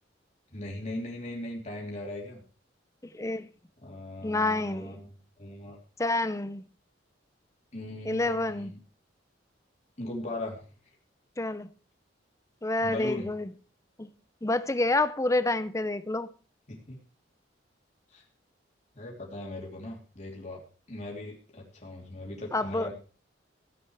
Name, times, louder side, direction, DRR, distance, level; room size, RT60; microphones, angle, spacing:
voice 1, 0.5-2.4 3.8-5.8 7.7-8.8 10.0-10.6 12.8-13.3 16.9-17.0 18.1-18.2 18.9-20.6 20.9-22.9, left 1 dB, 40° left, 3.3 m, -39 dB
voice 2, 3.1-3.5 4.2-5.0 6.0-6.6 8.1-8.7 11.4-11.7 12.6-13.5 14.0-14.1 14.4-16.3 22.5-22.9, left 2 dB, 15° left, 0.7 m, -28 dB
15.5 x 8.9 x 4.8 m
head